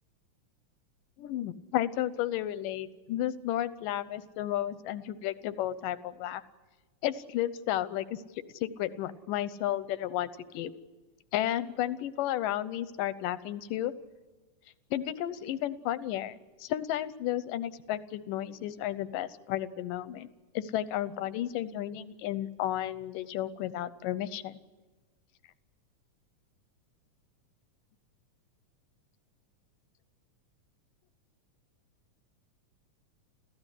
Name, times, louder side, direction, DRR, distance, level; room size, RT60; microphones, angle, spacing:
voice 1, 1.2-6.4 7.0-8.2 8.6-10.7 11.3-13.9 14.9-20.3 20.5-24.6, left 12 dB, 90° left, 15 dB, 2.5 m, -33 dB
29.0 x 14.5 x 10.0 m, 1.2 s
omnidirectional pair, 3.7 m